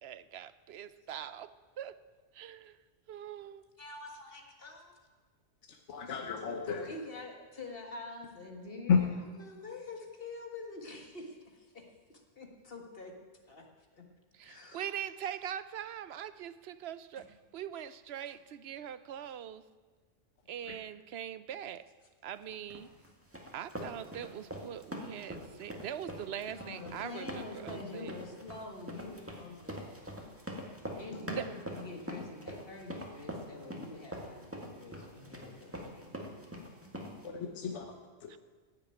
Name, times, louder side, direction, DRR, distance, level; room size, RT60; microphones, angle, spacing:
voice 1, 0.0-1.5 1.8-2.0 2.3-2.8 3.1-3.6 14.3-19.6 20.5-21.9 22.2-22.9 23.5-28.2 31.2-31.5 38.3-38.4, right 9 dB, 65° right, 15 dB, 0.8 m, -42 dB
voice 2, 3.8-4.9 6.7-9.1 9.4-11.9 12.4-13.1 13.5-13.6 13.9-14.0 14.4-14.9 26.5-29.8 31.0-36.7, left 3 dB, 50° left, 2 dB, 1.9 m, -46 dB
voice 3, 5.7-6.9 8.9-9.0 20.7-20.8 37.2-38.0 38.2-38.3, left 6 dB, 75° left, 4 dB, 1.3 m, -31 dB
sound 1, 22.7-37.3, equal, 10° right, 1.8 m, -43 dB
15.5 x 6.9 x 8.9 m, 1.5 s
omnidirectional pair, 1.2 m